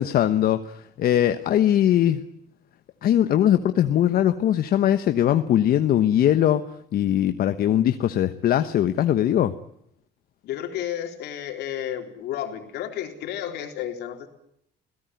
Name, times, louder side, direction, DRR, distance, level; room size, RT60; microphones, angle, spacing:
voice 1, 0.0-2.2 3.0-6.6 6.9-9.5, left 11 dB, 60° left, 9 dB, 1.1 m, -21 dB
voice 2, 10.4-14.3, left 10 dB, 80° left, 4 dB, 3.9 m, -32 dB
23.0 x 17.0 x 9.4 m, 0.76 s
cardioid pair, 110°, 17 cm